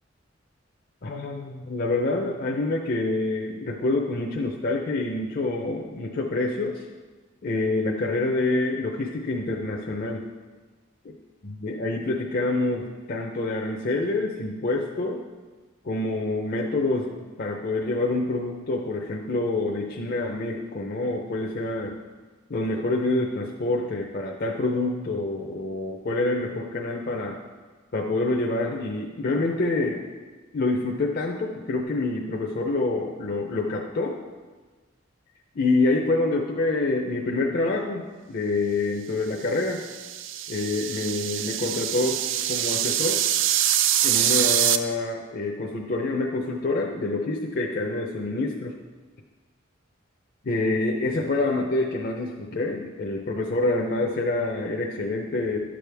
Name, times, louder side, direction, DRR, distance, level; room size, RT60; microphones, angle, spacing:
voice 1, 1.0-6.8 7.4-10.2 11.4-15.2 15.8-22.0 22.5-27.4 27.9-30.0 30.5-34.2 35.5-39.8 40.5-42.2 42.5-43.2 44.0-48.7 50.4-55.7, left 2 dB, 50° left, 0 dB, 0.6 m, -27 dB
sound 1, 39.6-44.8, right 11 dB, 70° right, 0.4 m, -24 dB
11.5 x 6.3 x 3.4 m, 1.3 s
head